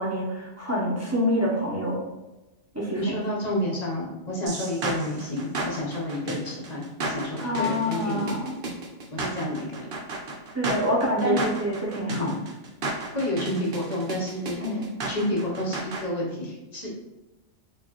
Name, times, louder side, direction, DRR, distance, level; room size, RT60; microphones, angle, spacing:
voice 1, 0.0-2.0 2.7-3.1 7.4-8.6 10.5-12.4 14.6-14.9, equal, 20° right, -6 dB, 0.5 m, -26 dB
voice 2, 3.0-8.4 9.1-9.9 11.2-11.4 12.1-12.4 13.1-14.6 15.1-16.9, left 1 dB, 35° left, -3 dB, 0.9 m, -29 dB
sound 1, 4.5-16.0, right 2 dB, 55° right, 0.7 m, -33 dB
4.4 x 2.4 x 2.9 m, 1.0 s
omnidirectional pair, 1.4 m